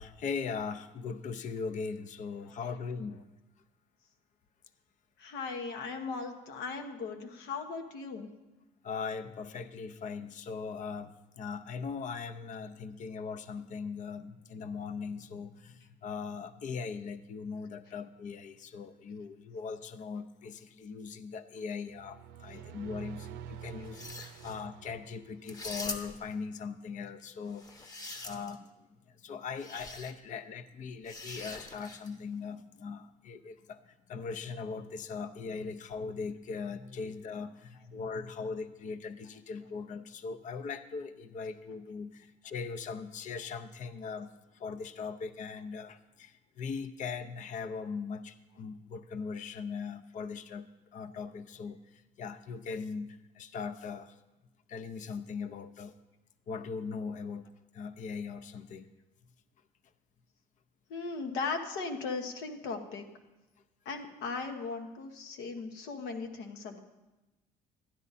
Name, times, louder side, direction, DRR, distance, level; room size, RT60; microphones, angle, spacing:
voice 1, 0.0-3.2 8.8-28.0 28.2-54.2 54.7-56.0 56.5-58.9, left 5 dB, 50° left, 12 dB, 0.6 m, -40 dB
voice 2, 5.2-8.3 60.9-63.1 63.8-66.8, left 4 dB, 85° left, 4 dB, 1.2 m, -38 dB
sound 1, 21.9-25.8, right 8 dB, 90° right, 0.5 m, -47 dB
sound 2, 23.8-24.6 25.5-26.3 27.5-28.7 29.6-30.1 31.1-32.2, left 2 dB, 20° left, 0.9 m, -43 dB
13.0 x 10.0 x 4.1 m, 1.0 s
cardioid pair, 110°, 17 cm